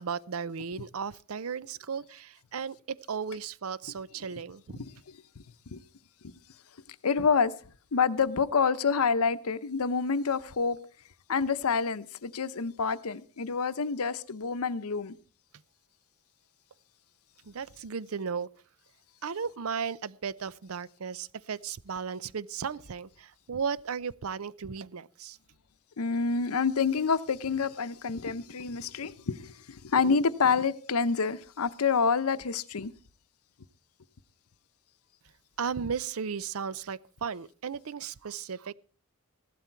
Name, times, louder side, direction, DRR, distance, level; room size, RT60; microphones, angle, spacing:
voice 1, 0.0-4.8 17.5-18.5 19.2-25.4 35.6-38.7, right 6 dB, 75° right, 0.6 m, -35 dB
voice 2, 4.8-5.2 5.7-5.8 7.0-7.5 7.9-10.8 11.3-15.2 26.0-32.9, left 5 dB, 85° left, 0.8 m, -27 dB
15.5 x 12.0 x 4.5 m
head